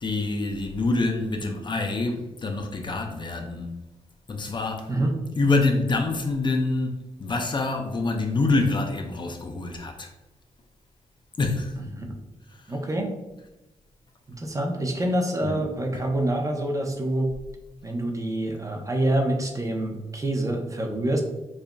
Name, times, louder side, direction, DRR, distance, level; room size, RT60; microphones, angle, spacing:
voice 1, 0.0-3.8 4.3-4.9 5.4-10.1 11.4-11.8 12.6-12.7 15.4-15.7, left 3 dB, 40° left, 0.5 m, -26 dB
voice 2, 12.7-13.1 14.3-17.3 17.8-21.2, right 1 dB, 25° right, 0.7 m, -26 dB
4.8 x 2.6 x 2.2 m
cardioid pair, 75°, 12 cm